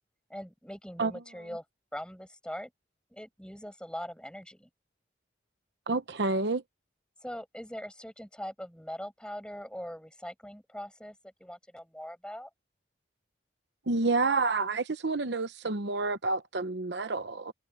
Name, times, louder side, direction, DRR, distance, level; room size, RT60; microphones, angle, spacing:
voice 1, 0.3-1.6 1.9-2.7 3.1-4.7 7.2-12.5, equal, 5° left, 7.2 m, -41 dB
voice 2, 5.9-6.6 13.9-17.5, right 3 dB, 70° right, 0.9 m, -29 dB
head